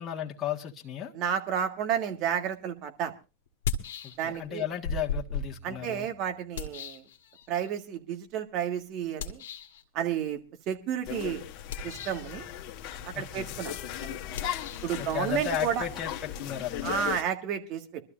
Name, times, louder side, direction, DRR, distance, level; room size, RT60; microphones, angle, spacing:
voice 1, 0.0-1.1 4.0-6.1 13.1-13.5 15.0-16.9, left 10 dB, 30° left, -1 dB, 1.6 m, -34 dB
voice 2, 1.1-3.1 4.2-4.6 5.6-7.0 7.5-9.4 9.9-10.4 10.7-11.4 11.8-12.5 13.0-13.8 14.0-14.2 14.8-15.8 16.8-18.0, right 9 dB, 50° right, 6 dB, 1.8 m, -31 dB
sound 1, 2.5-2.6 3.5-4.5 4.8-7.7 9.2-9.8 11.6-12.3 14.3-16.9, left 4 dB, 70° left, 1.4 m, -37 dB
sound 2, 11.1-17.2, left 11 dB, 50° left, 1.4 m, -37 dB
25.0 x 13.0 x 2.6 m, 0.30 s
hypercardioid pair, 90°, 0 cm